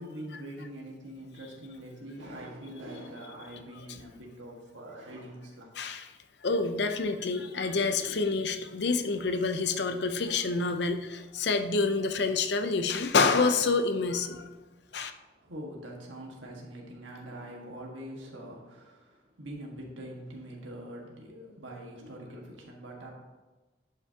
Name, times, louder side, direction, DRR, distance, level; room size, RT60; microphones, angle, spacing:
voice 1, 0.0-5.7 14.9-15.0 15.3-23.1, right 1 dB, 85° right, -1 dB, 1.6 m, -44 dB
voice 2, 5.8-6.1 6.4-14.5 14.9-15.1, left 4 dB, 60° left, 8 dB, 0.6 m, -27 dB
11.0 x 5.8 x 2.8 m, 1.2 s
head